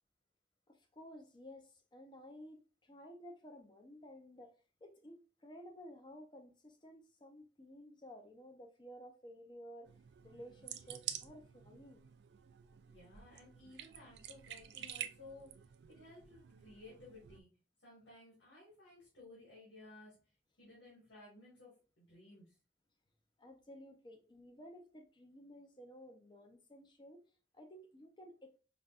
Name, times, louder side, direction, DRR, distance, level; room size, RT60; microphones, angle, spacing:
voice 1, 0.7-4.5 4.8-9.9 10.2-12.1 23.4-27.2 27.5-28.6, equal, 25° left, 0.6 m, -54 dB
sound 1, 9.9-17.4, right 10 dB, 65° right, 0.3 m, -49 dB
voice 2, 12.8-15.5 15.9-17.5 17.8-20.2 20.6-22.6, left 2 dB, 85° left, 1.7 m, -57 dB
5.0 x 2.2 x 2.4 m
head